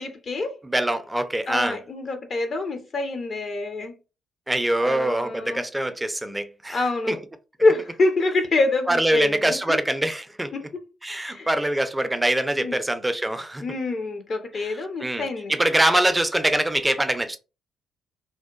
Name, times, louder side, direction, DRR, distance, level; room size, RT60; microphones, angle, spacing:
voice 1, 0.0-0.6 1.5-3.9 4.8-5.6 6.7-7.2 7.6-9.8 10.5-10.8 11.1-11.5 12.6-12.8 13.6-15.5, left 2 dB, 50° left, 0.5 m, -26 dB
voice 2, 0.6-1.8 4.5-6.8 7.1-7.2 8.9-10.5 11.0-13.6 14.5-14.7 15.0-17.4, right 1 dB, 15° right, 0.4 m, -24 dB
2.7 x 2.1 x 2.2 m
hypercardioid pair, 45°, 0 cm